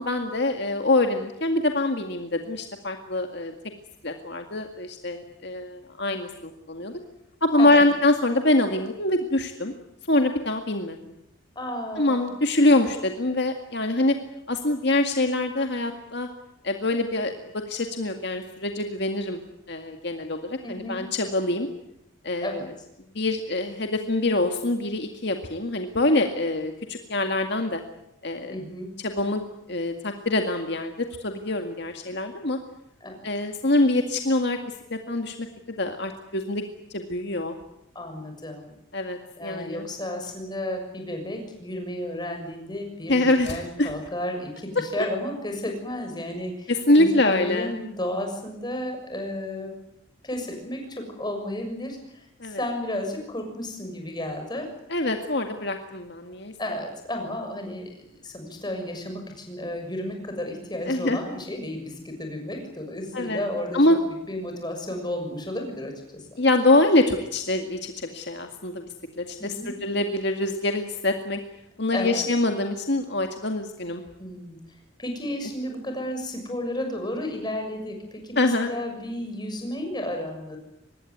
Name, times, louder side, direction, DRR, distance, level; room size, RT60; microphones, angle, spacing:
voice 1, 0.0-3.5 4.0-6.9 7.4-9.7 10.1-11.0 12.0-14.1 14.5-16.3 16.6-17.3 17.7-19.4 19.7-21.7 22.2-22.6 23.1-27.8 28.2-28.6 29.0-29.4 29.7-32.6 33.2-34.6 34.9-36.6 36.9-37.6 38.9-39.9 43.1-43.9 46.7-47.7 52.4-52.6 54.9-56.5 60.9-61.2 63.1-63.4 63.7-64.0 66.4-68.9 69.2-71.4 71.8-74.0 78.4-78.7, left 2 dB, 55° left, 5 dB, 2.0 m, -24 dB
voice 2, 11.5-12.2 20.6-21.0 22.4-22.7 28.5-28.9 33.0-33.2 37.9-38.8 39.4-49.7 50.2-54.7 56.6-63.9 64.3-66.3 69.4-69.7 71.9-72.3 74.2-80.6, left 1 dB, 20° left, 4 dB, 6.6 m, -33 dB
25.0 x 20.0 x 9.5 m, 0.82 s
head